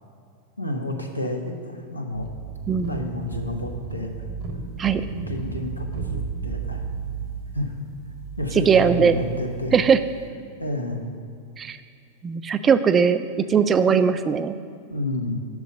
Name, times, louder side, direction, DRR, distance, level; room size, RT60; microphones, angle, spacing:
voice 1, 0.6-2.3 2.7-4.2 5.1-6.8 7.5-7.7 8.4-9.8 10.6-11.1 14.9-15.4, left 1 dB, 85° left, 2 dB, 0.7 m, -30 dB
sound 1, 2.1-10.3, right 5 dB, 45° right, 0.7 m, -34 dB
voice 2, 2.7-3.0 4.8-5.0 8.6-9.2 9.7-10.0 11.6-11.8 12.2-13.2 13.5-14.6, right 6 dB, 20° right, 12 dB, 0.3 m, -19 dB
6.6 x 4.7 x 6.4 m, 2.3 s
figure-of-eight pair, 90°, 0 cm